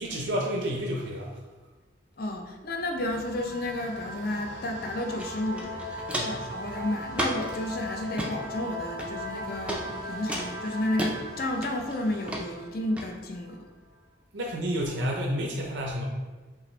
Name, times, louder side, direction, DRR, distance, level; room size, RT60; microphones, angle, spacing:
voice 1, 0.0-1.3 6.1-6.4 14.3-16.0, equal, 70° right, -1 dB, 0.6 m, -30 dB
voice 2, 2.2-5.8 6.2-13.7, left 1 dB, 50° left, 3 dB, 0.5 m, -32 dB
sound 1, 3.0-12.5, equal, 20° left, 1.0 m, -49 dB
sound 2, 3.2-13.6, equal, 75° left, 1.2 m, -39 dB
Walk footsteps, 5.2-5.3 5.6-6.5 7.1-7.6 8.0-8.3 9.0-9.3 9.7-9.8 10.3-11.1 11.6-11.9 12.3-12.4 13.0-13.1, right 1 dB, 5° right, 0.4 m, -32 dB
5.5 x 2.5 x 3.2 m, 1.3 s
head